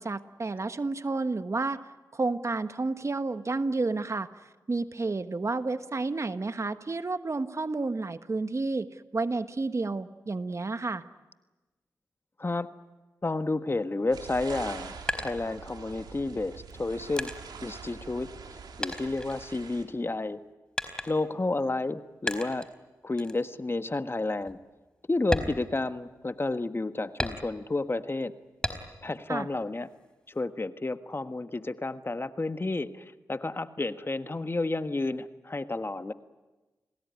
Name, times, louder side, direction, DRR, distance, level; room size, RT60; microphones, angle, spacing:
voice 1, 0.0-1.8 2.1-11.0 29.3-29.5, right 3 dB, 45° right, 10 dB, 1.3 m, -31 dB
voice 2, 13.2-17.3 17.6-20.4 21.1-22.7 23.0-24.6 25.1-28.3 29.0-29.9 30.3-36.1, left 2 dB, 35° left, 9 dB, 1.5 m, -31 dB
sound 1, 14.1-19.8, right 5 dB, 80° right, 3.5 m, -44 dB
sound 2, 14.5-16.1 16.7-18.5 18.8-20.0 20.8-21.4 22.3-22.8 23.2-23.4 23.9-24.0 24.4-24.6 25.2-26.4 27.2-27.8 28.6-29.2 29.6-30.4, left 1 dB, 10° left, 4.1 m, -35 dB
30.0 x 19.5 x 9.6 m, 1.1 s
supercardioid pair, 40°, 7 cm